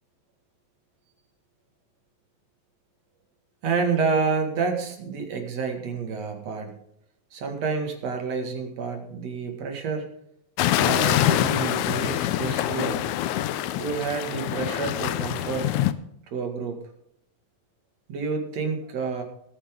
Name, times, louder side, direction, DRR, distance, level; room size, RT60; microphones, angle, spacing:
voice 1, 3.6-6.8 7.3-10.0 10.8-13.0 13.8-15.7 16.3-16.8 18.1-19.2, right 5 dB, 55° right, 4 dB, 3.0 m, -29 dB
sound 1, 10.6-15.9, left 13 dB, 75° left, 1.9 m, -25 dB
18.5 x 9.7 x 3.8 m, 0.73 s
omnidirectional pair, 3.7 m